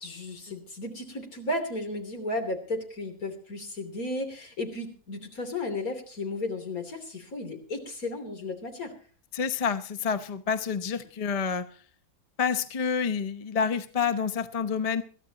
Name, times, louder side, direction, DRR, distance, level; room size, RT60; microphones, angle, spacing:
voice 1, 0.0-8.9, left 2 dB, 75° left, 6 dB, 3.6 m, -34 dB
voice 2, 9.3-11.7 12.4-15.0, left 6 dB, 30° left, 11 dB, 0.8 m, -28 dB
22.0 x 14.5 x 3.0 m, 0.42 s
omnidirectional pair, 1.6 m